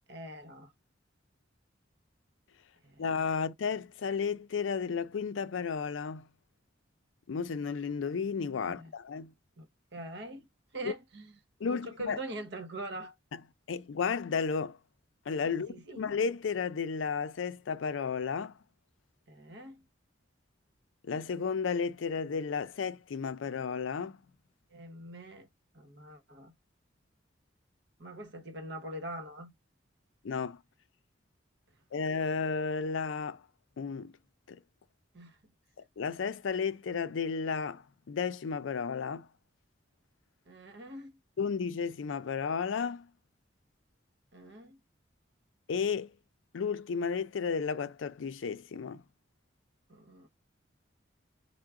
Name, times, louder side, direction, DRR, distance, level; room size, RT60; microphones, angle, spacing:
voice 1, 0.1-0.7 2.8-3.0 8.7-8.9 9.6-9.7 9.9-10.5 10.7-11.4 11.7-13.1 15.4-16.0 19.3-19.9 24.7-25.5 25.7-26.6 28.0-29.5 35.1-35.5 40.5-41.2 44.3-44.8 49.9-50.3, right 1 dB, 60° right, 1.0 m, -43 dB
voice 2, 3.0-6.2 7.3-9.3 10.8-10.9 11.6-12.2 13.7-14.8 15.3-18.5 21.0-24.2 30.2-30.6 31.9-33.4 33.8-34.1 34.5-34.6 36.0-39.3 41.4-43.1 45.7-46.1 46.5-49.0, left 5 dB, 80° left, 0.4 m, -33 dB
4.6 x 2.1 x 3.6 m
head